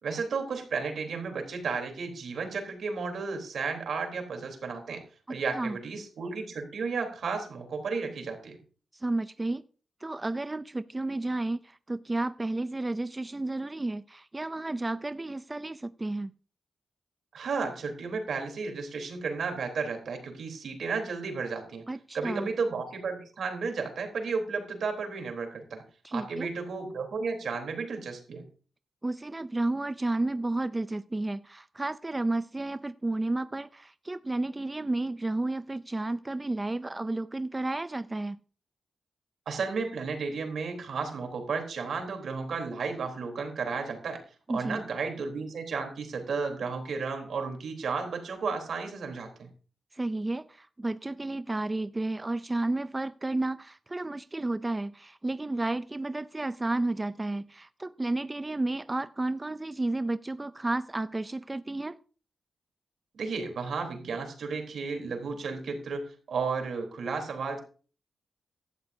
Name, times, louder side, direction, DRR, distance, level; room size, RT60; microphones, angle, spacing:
voice 1, 0.0-5.0 5.3-8.6 17.3-21.8 22.1-25.8 26.1-28.4 39.5-44.2 44.5-49.5 63.1-67.6, right 4 dB, 75° right, 4 dB, 3.6 m, -33 dB
voice 2, 5.3-5.8 8.9-9.6 10.0-16.3 21.9-22.5 26.0-26.5 29.0-38.4 44.5-44.8 49.9-62.0, right 2 dB, 20° right, 13 dB, 0.5 m, -32 dB
16.0 x 12.5 x 2.7 m, 0.39 s
cardioid pair, 85°, 0 cm